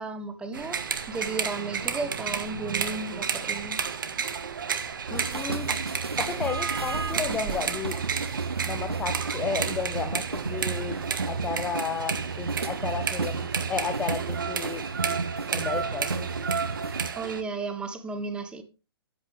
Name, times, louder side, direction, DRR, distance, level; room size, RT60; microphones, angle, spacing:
voice 1, 0.0-3.8 17.1-18.6, right 3 dB, 5° right, 1.1 m, -34 dB
sound 1, 0.5-17.4, right 6 dB, 55° right, 1.4 m, -32 dB
voice 2, 5.1-5.7 6.2-8.0 8.6-14.8 15.5-16.3, left 6 dB, 10° left, 0.5 m, -33 dB
sound 2, 5.1-17.1, right 4 dB, 75° right, 0.7 m, -32 dB
13.5 x 8.5 x 3.3 m
figure-of-eight pair, 125°, 13 cm